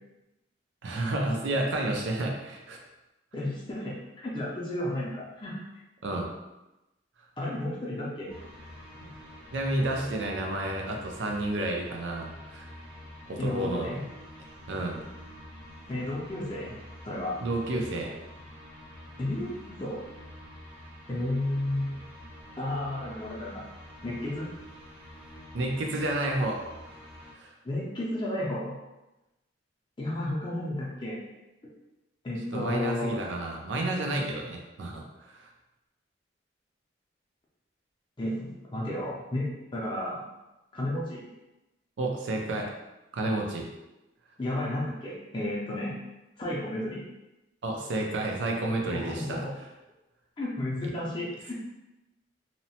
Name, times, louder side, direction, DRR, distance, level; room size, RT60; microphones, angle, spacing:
voice 1, 0.8-2.8 6.0-6.3 9.0-9.1 9.5-12.7 13.3-13.9 14.7-15.0 17.4-18.1 25.5-26.6 27.4-27.5 32.5-35.5 42.0-42.7 43.1-43.7 47.6-49.4 50.8-50.9, right 2 dB, 85° right, 1 dB, 0.5 m, -30 dB
voice 2, 3.3-5.5 7.4-8.3 13.4-14.0 15.9-16.8 17.0-17.4 19.2-20.0 21.1-22.0 22.6-23.6 24.0-24.5 27.6-28.8 30.0-31.2 32.2-33.2 38.2-40.2 40.7-41.2 44.4-46.0 46.4-47.0 48.9-49.5 50.4-51.5, left 1 dB, 25° left, -4 dB, 0.4 m, -32 dB
sound 1, 8.3-27.3, left 1 dB, 30° right, 0.6 m, -47 dB
2.8 x 2.0 x 2.8 m, 0.99 s
head